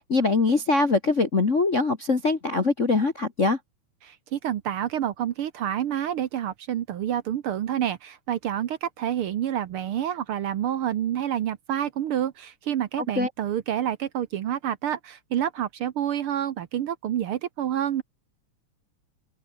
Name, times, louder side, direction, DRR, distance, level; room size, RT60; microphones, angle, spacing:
voice 1, 0.0-3.6 13.0-13.3, left 3 dB, 30° left, 1.6 m, -23 dB
voice 2, 4.0-18.0, right 10 dB, 65° right, 1.4 m, -28 dB
open air
omnidirectional pair, 3.5 m